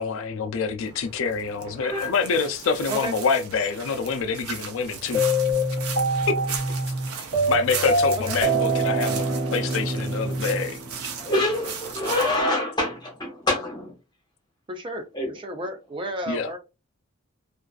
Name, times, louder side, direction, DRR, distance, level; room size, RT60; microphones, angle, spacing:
voice 1, 0.0-5.2 6.3-6.4 7.5-9.3 9.5-10.8 16.3-16.6, left 5 dB, 60° left, 0.4 m, -26 dB
sound 1, 0.8-12.4, right 6 dB, 85° right, 0.6 m, -37 dB
voice 2, 1.8-2.1 11.2-14.0 15.1-15.4, left 1 dB, 20° left, 0.8 m, -26 dB
sound 2, 5.1-11.3, right 1 dB, 55° right, 1.1 m, -25 dB
voice 3, 14.7-15.0 15.3-16.6, right 1 dB, 25° right, 0.4 m, -32 dB
2.4 x 2.3 x 2.3 m
head